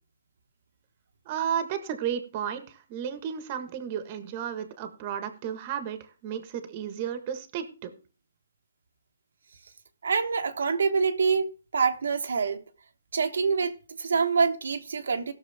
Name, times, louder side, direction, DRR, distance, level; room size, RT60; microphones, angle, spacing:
voice 1, 1.2-7.9, right 8 dB, 30° right, 1.5 m, -33 dB
voice 2, 10.0-12.6 13.1-15.3, right 5 dB, 80° right, 1.2 m, -26 dB
18.0 x 6.7 x 3.5 m
hypercardioid pair, 160°, 0 cm